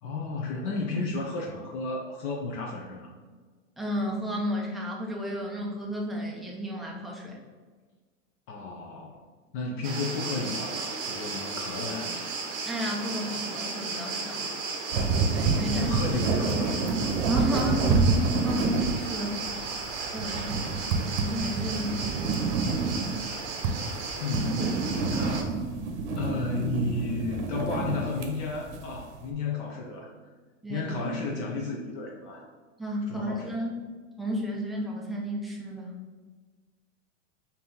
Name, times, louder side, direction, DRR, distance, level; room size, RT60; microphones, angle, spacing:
voice 1, 0.0-3.0 8.5-9.3 9.5-12.3 15.7-17.1 24.2-25.6 26.2-30.1 30.7-32.5 33.1-33.7, left 3 dB, 45° left, -1 dB, 0.7 m, -33 dB
voice 2, 3.8-7.4 12.6-14.5 15.3-15.9 17.3-19.4 20.0-20.7 21.2-22.4 30.6-31.2 32.8-33.8 34.2-35.9, equal, ahead, -3 dB, 0.4 m, -32 dB
sound 1, 9.8-25.4, right 4 dB, 35° right, 0.7 m, -35 dB
sound 2, 14.9-29.2, right 4 dB, 65° right, 0.8 m, -28 dB
4.2 x 2.8 x 3.7 m, 1.4 s
supercardioid pair, 135°, 37 cm